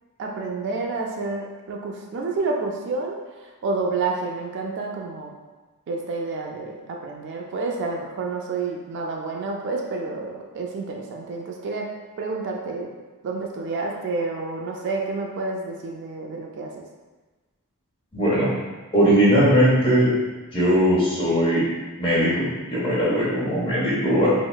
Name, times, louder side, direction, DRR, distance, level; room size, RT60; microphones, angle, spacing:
voice 1, 0.2-5.3 5.9-11.9 12.2-12.9 13.2-16.8, right 3 dB, 55° right, 0 dB, 0.3 m, -29 dB
voice 2, 18.1-18.5 18.9-20.1 20.5-21.6 22.0-24.3, equal, 25° left, -9 dB, 1.0 m, -19 dB
3.8 x 2.0 x 2.2 m, 1.2 s
head